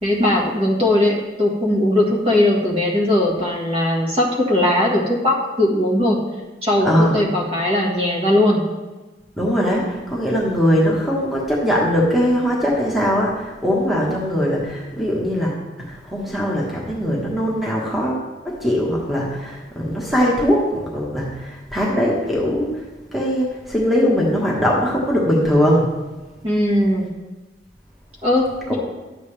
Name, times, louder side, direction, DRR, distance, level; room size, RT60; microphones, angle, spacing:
voice 1, 0.0-6.2 6.6-8.6 26.4-27.1 28.2-28.8, left 1 dB, 35° right, -2 dB, 1.7 m, -19 dB
voice 2, 6.8-7.2 9.4-15.6 15.8-22.8 23.1-25.9 28.7-28.8, equal, ahead, -4 dB, 1.3 m, -20 dB
11.5 x 8.0 x 3.3 m, 1.2 s
head